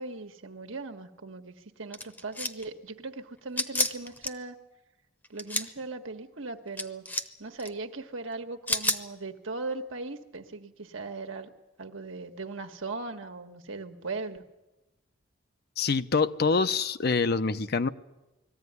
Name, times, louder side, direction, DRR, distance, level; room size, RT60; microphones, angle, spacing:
voice 1, 0.0-4.6 5.3-7.1 7.4-11.5 11.8-14.4, right 3 dB, 80° right, 4 dB, 1.5 m, -38 dB
sound 1, 1.9-2.7 3.6-4.3 5.2-5.7 6.8-7.3 7.6-7.7 8.7-9.0, left 2 dB, 10° left, 0.9 m, -29 dB
voice 2, 15.8-17.9, left 4 dB, 55° left, 12 dB, 0.7 m, -25 dB
20.5 x 14.5 x 9.6 m, 1.0 s
head